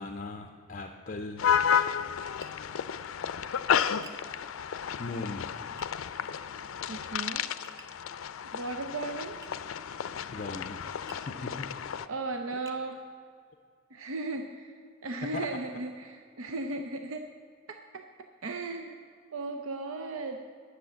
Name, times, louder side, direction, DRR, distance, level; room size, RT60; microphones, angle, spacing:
voice 1, 0.0-1.8 5.0-5.6 10.3-11.8 15.3-15.5, left 3 dB, 40° left, 6 dB, 0.5 m, -39 dB
sound 1, 1.4-12.1, left 8 dB, 90° left, 0.4 m, -32 dB
Tap, 2.4-2.6 4.0-4.3 5.8-5.9 7.6-8.0 9.4-9.6 11.1-11.3 12.0-12.1 12.7-12.8, right 2 dB, 20° right, 0.9 m, -51 dB
voice 2, 6.9-7.5 8.5-9.4 12.1-13.1 13.9-17.3 17.7-18.0 18.4-19.0 19.3-20.4, right 3 dB, 85° right, 5 dB, 0.6 m, -36 dB
10.5 x 6.5 x 8.3 m, 2.3 s
head